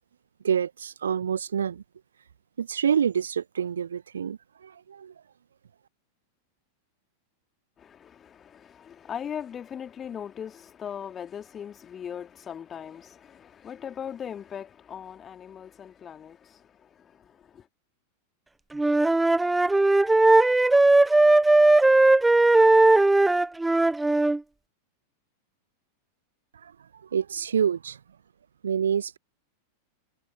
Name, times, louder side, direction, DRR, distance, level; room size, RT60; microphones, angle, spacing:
voice 1, 0.4-1.8 2.6-5.1 26.6-26.7 27.1-28.0 28.6-29.2, right 8 dB, 70° right, 1.4 m, -27 dB
voice 2, 7.8-17.7, left 8 dB, 25° left, 2.6 m, -39 dB
Wind instrument woodwind instrument, 18.7-24.4, right 2 dB, 5° right, 0.5 m, -18 dB
figure-of-eight pair, 90°, 0 cm